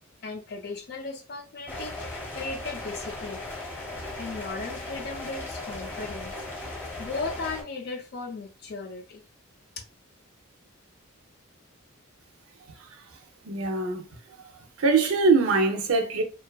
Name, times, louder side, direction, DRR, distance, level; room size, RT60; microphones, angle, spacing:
voice 1, 0.2-3.4 4.2-6.3 7.0-9.2, left 3 dB, 50° left, 0.4 m, -36 dB
sound 1, 1.7-7.6, left 2 dB, 10° left, 0.8 m, -37 dB
voice 2, 12.7-14.5 14.8-16.2, right 4 dB, 75° right, 0.5 m, -24 dB
2.5 x 2.3 x 2.3 m
head